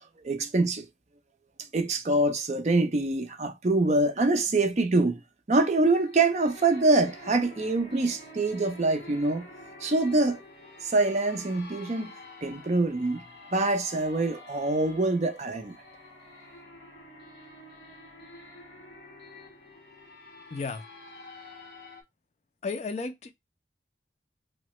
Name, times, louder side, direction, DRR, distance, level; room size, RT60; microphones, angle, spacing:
voice 1, 0.2-0.8 1.7-5.2 5.5-9.5 9.8-10.4 10.8-12.1 12.4-13.2 13.5-15.7, right 2 dB, 40° right, 0.5 m, -25 dB
sound 1, 5.8-22.0, left 2 dB, 65° left, 1.2 m, -48 dB
voice 2, 20.5-20.8 22.6-23.3, left 4 dB, 40° left, 0.3 m, -33 dB
3.5 x 2.0 x 3.0 m
head